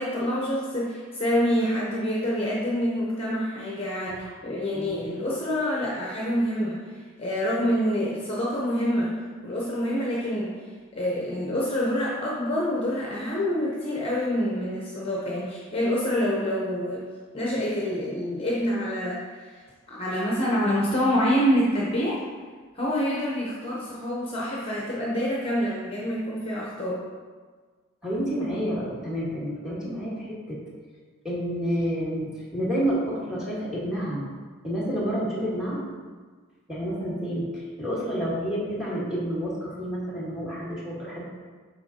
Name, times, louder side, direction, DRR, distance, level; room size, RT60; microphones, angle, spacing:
voice 1, 0.0-10.5 10.9-17.1 17.3-22.2 22.7-27.0, equal, 25° left, -5 dB, 0.9 m, -27 dB
voice 2, 4.7-5.0 28.0-30.6 31.2-34.2 34.6-35.8 36.7-41.2, equal, 5° right, -7 dB, 1.6 m, -29 dB
7.7 x 5.5 x 2.9 m, 1.5 s
head